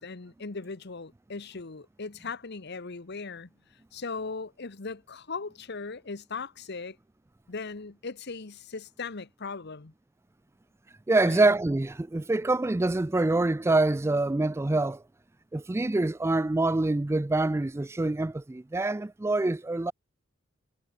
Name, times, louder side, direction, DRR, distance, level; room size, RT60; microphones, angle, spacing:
voice 1, 0.0-3.5 3.9-7.0 7.5-9.9 11.2-11.5, left 4 dB, 55° left, 1.1 m, -38 dB
voice 2, 11.1-15.0 15.5-19.9, right 2 dB, 15° right, 0.4 m, -25 dB
head